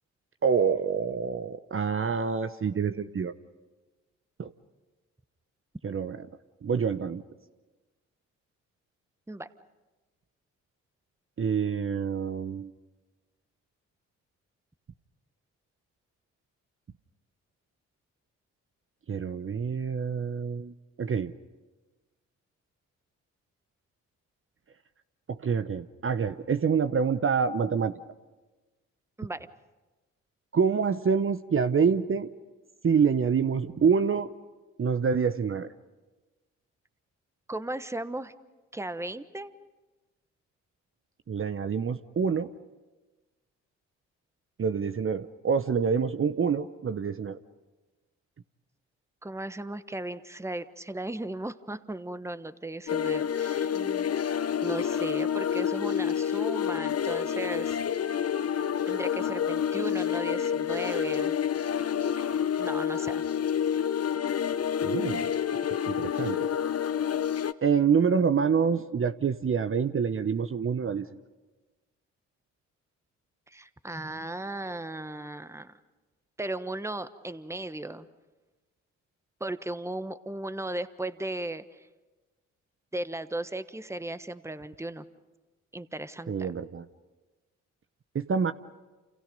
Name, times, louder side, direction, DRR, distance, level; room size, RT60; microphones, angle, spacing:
voice 1, 0.4-3.3 4.4-4.5 5.8-6.2 6.6-7.2 11.4-12.7 19.1-21.3 25.3-27.9 30.5-32.3 32.8-34.3 34.8-35.7 41.3-42.5 44.6-47.4 64.8-65.3 65.9-66.5 67.6-71.1 86.3-86.8 88.1-88.5, right 6 dB, 35° right, 10 dB, 0.9 m, -26 dB
voice 2, 37.5-38.3 38.7-39.5 49.2-54.1 54.6-57.8 58.9-61.4 62.6-63.2 73.5-75.7 76.4-78.1 79.4-81.9 82.9-85.0 85.7-86.5, right 1 dB, 10° right, 12 dB, 1.2 m, -36 dB
sound 1, 52.9-67.5, left 8 dB, 45° left, 1.0 m, -28 dB
29.0 x 28.5 x 5.4 m, 1.2 s
hypercardioid pair, 45°, 35 cm